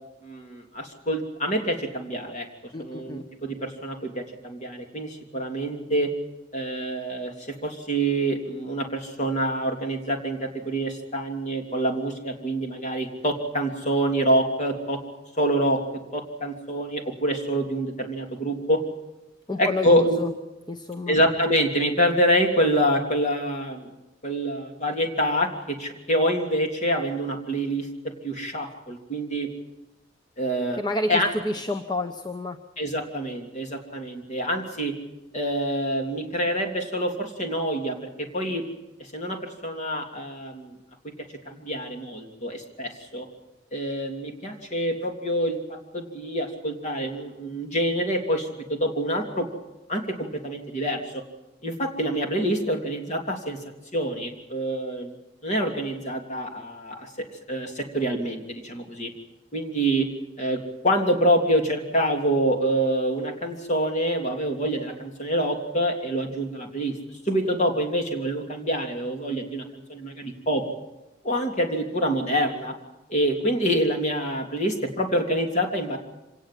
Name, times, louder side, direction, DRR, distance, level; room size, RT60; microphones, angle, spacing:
voice 1, 0.2-2.5 2.8-6.1 6.5-15.0 15.4-15.8 16.1-18.8 19.6-20.2 21.1-23.9 24.2-27.9 28.2-29.5 30.4-30.8 31.1-31.3 32.8-35.0 35.3-38.6 39.1-40.7 41.0-41.1 41.5-43.3 43.7-49.5 49.9-51.2 51.6-53.6 53.9-55.1 55.4-59.1 59.5-60.1 60.4-66.9 67.2-69.6 69.9-70.6 71.2-72.7 73.1-76.0, right 1 dB, 40° left, 3 dB, 3.2 m, -26 dB
voice 2, 2.7-3.3 19.5-20.3 20.7-21.2 30.8-32.6, left 2 dB, 25° left, 6 dB, 1.0 m, -29 dB
25.5 x 18.5 x 7.7 m, 1.0 s
head